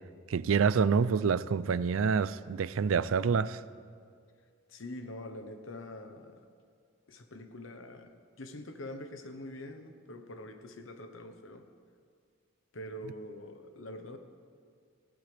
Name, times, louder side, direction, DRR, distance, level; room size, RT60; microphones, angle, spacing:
voice 1, 0.3-3.6, right 6 dB, 85° right, 17 dB, 0.4 m, -27 dB
voice 2, 4.7-6.5 7.1-11.7 12.7-14.2, left 1 dB, 75° left, 7 dB, 1.1 m, -44 dB
20.0 x 16.0 x 3.4 m, 2.2 s
head